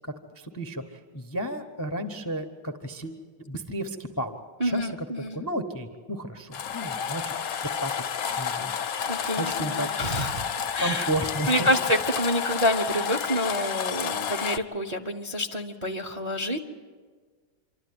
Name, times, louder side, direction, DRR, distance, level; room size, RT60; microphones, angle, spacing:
voice 1, 0.4-4.3 4.6-4.9 5.3-7.3 7.8-8.0 8.4-10.0 10.8-11.7, right 1 dB, 20° left, 7 dB, 0.6 m, -33 dB
voice 2, 4.6-5.4 9.1-10.4 10.7-11.1 11.5-16.6, equal, 30° right, 3 dB, 0.7 m, -27 dB
sound 1, 6.5-14.6, left 7 dB, 60° left, 1.1 m, -30 dB
27.0 x 12.5 x 9.6 m, 1.5 s
omnidirectional pair, 2.0 m